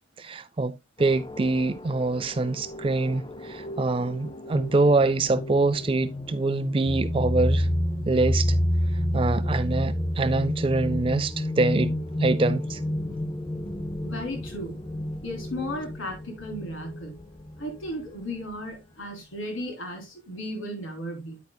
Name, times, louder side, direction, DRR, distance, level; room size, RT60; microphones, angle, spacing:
voice 1, 0.2-7.7 8.1-8.6 9.1-11.9 12.2-12.8, right 3 dB, 25° right, 0.4 m, -25 dB
sound 1, 1.0-18.1, left 1 dB, 25° left, 0.6 m, -30 dB
voice 2, 14.0-14.8 15.2-17.2 17.6-21.4, equal, 80° left, 3.6 m, -35 dB
9.5 x 8.8 x 2.2 m
head